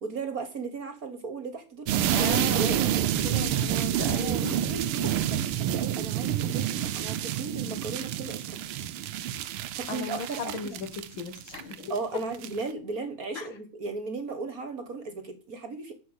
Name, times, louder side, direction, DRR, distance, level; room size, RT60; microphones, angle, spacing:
voice 1, 0.0-2.8 4.2-8.6 9.8-10.6 11.9-15.9, right 4 dB, 45° right, 8 dB, 1.7 m, -36 dB
sound 1, 1.9-12.0 12.3-12.6, right 11 dB, 80° right, 1.7 m, -28 dB
voice 2, 2.1-5.1 9.9-10.9 11.2-12.0 13.3-13.5, left 4 dB, 65° left, 9 dB, 2.2 m, -36 dB
11.0 x 6.9 x 8.1 m, 0.38 s
omnidirectional pair, 2.4 m